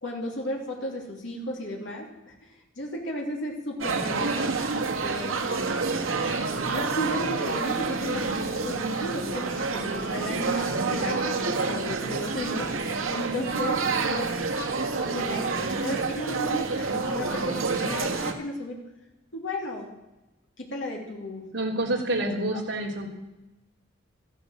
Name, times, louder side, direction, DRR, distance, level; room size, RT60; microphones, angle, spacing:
voice 1, 0.0-5.4 6.7-14.3 14.7-18.8 19.3-19.9 20.6-21.5, left 1 dB, 65° left, -1 dB, 2.9 m, -34 dB
sound 1, 3.8-18.3, right 4 dB, 90° right, 1.8 m, -28 dB
voice 2, 21.5-23.1, right 1 dB, 65° right, -1 dB, 3.3 m, -28 dB
14.0 x 11.5 x 7.5 m, 0.98 s
head